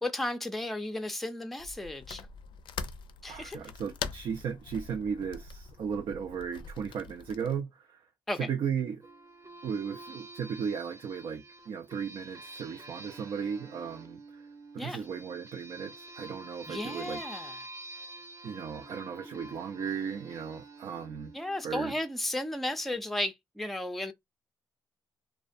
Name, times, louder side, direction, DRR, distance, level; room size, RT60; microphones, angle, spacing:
voice 1, 0.0-2.3 3.2-3.6 8.3-8.4 14.8-15.0 16.7-17.5 21.3-24.1, left 1 dB, ahead, 0.5 m, -34 dB
sound 1, 1.6-7.6, left 6 dB, 65° left, 0.4 m, -43 dB
voice 2, 3.3-8.1 8.4-9.0 9.6-14.5 14.7-17.2 18.4-21.3 21.6-22.0, right 7 dB, 65° right, 0.4 m, -36 dB
sound 2, 9.0-22.2, right 2 dB, 35° right, 0.7 m, -48 dB
2.4 x 2.1 x 2.5 m
supercardioid pair, 65°, 9 cm